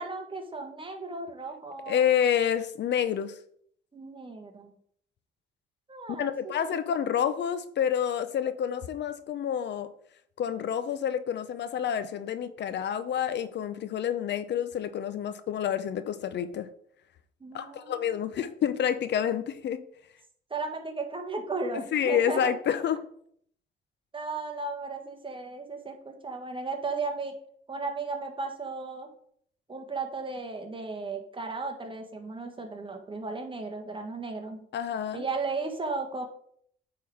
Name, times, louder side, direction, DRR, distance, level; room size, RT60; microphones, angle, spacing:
voice 1, 0.0-2.0 3.9-4.7 5.9-6.7 17.4-18.1 20.5-22.5 24.1-27.4 27.7-29.1 29.7-34.6 35.1-36.2, right 3 dB, 25° right, 3 dB, 1.5 m, -35 dB
voice 2, 1.9-3.4 6.2-9.9 10.4-16.7 17.5-19.8 21.9-23.0 34.7-35.2, left 9 dB, 60° left, 12 dB, 0.6 m, -28 dB
8.6 x 3.8 x 4.9 m, 0.64 s
cardioid pair, 90°, 20 cm